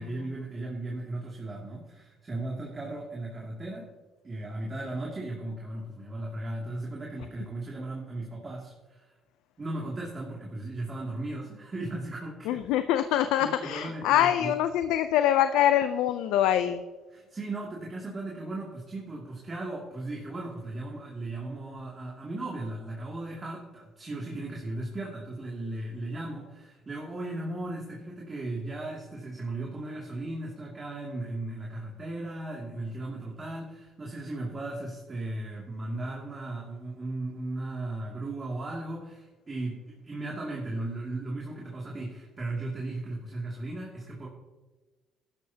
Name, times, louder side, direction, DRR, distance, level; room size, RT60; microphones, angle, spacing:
voice 1, 0.0-3.9 4.2-9.1 9.6-12.6 13.0-13.1 13.4-14.6 17.1-44.3, right 2 dB, 30° right, -3 dB, 2.5 m, -36 dB
voice 2, 12.5-16.8, left 11 dB, 85° left, 9 dB, 0.5 m, -24 dB
15.5 x 12.0 x 2.9 m, 1.2 s
supercardioid pair, 80°, 0 cm